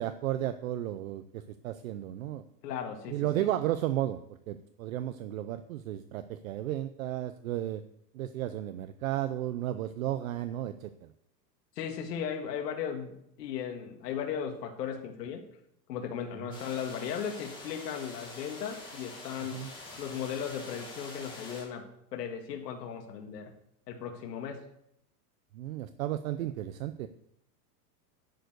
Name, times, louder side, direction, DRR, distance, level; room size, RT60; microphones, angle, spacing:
voice 1, 0.0-2.4 3.1-4.2 4.5-7.8 8.1-11.1 19.5-19.7 25.5-27.1, right 13 dB, 55° right, 11 dB, 0.6 m, -33 dB
voice 2, 2.6-3.5 11.8-15.4 15.9-19.6 20.0-21.8 22.1-23.5 23.9-24.6, left 8 dB, 75° left, 3 dB, 1.8 m, -36 dB
sound 1, 16.5-21.6, left 2 dB, 10° left, 1.9 m, -46 dB
11.0 x 4.7 x 7.8 m, 0.76 s
supercardioid pair, 175°, 50 cm